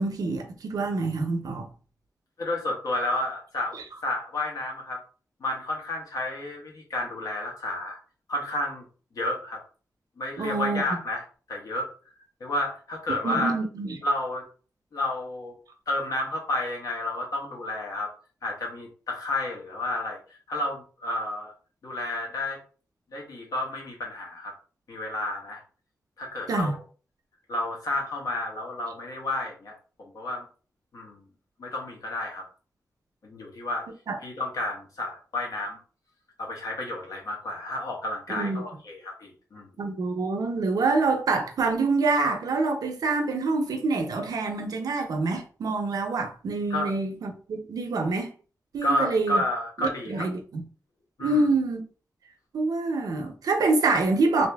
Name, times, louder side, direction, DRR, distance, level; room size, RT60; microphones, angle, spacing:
voice 1, 0.0-1.7 10.4-10.8 13.2-14.0 26.5-26.7 34.1-34.2 38.3-38.6 39.8-48.3 48.7-49.4 49.8-50.6 51.2-51.8 52.5-54.5, right 3 dB, 85° right, 0.7 m, -26 dB
voice 2, 2.4-3.8 4.0-5.0 5.4-8.0 8.3-8.8 9.1-9.6 10.2-11.2 11.5-11.9 12.4-13.6 14.0-14.4 14.9-15.6 15.9-18.1 18.4-20.2 20.5-21.5 21.8-22.6 23.1-24.5 24.9-25.6 26.2-26.8 27.5-29.7 30.0-30.5 30.9-31.2 31.6-32.5 33.2-33.9 34.2-35.8 36.4-39.7 46.7-46.9 48.8-50.3 51.2-51.5, left 1 dB, 70° left, 1.2 m, -31 dB
2.8 x 2.7 x 3.4 m
wide cardioid pair, 175°, 6 cm